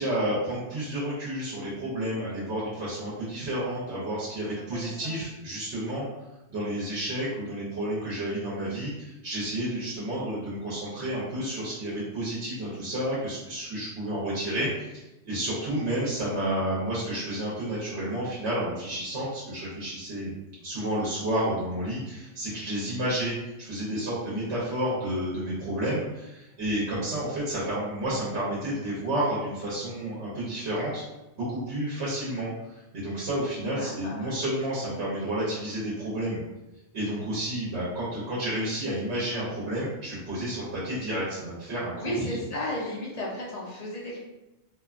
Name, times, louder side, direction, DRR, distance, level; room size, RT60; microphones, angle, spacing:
voice 1, 0.0-6.1 6.5-14.9 15.2-20.3 20.6-31.0 31.4-36.4 36.9-42.1, right 1 dB, 75° right, -8 dB, 1.1 m, -30 dB
voice 2, 4.6-5.2 22.8-23.1 33.7-34.4 42.0-44.2, left 1 dB, 50° left, -4 dB, 0.5 m, -34 dB
2.6 x 2.2 x 2.4 m, 0.96 s
omnidirectional pair, 1.2 m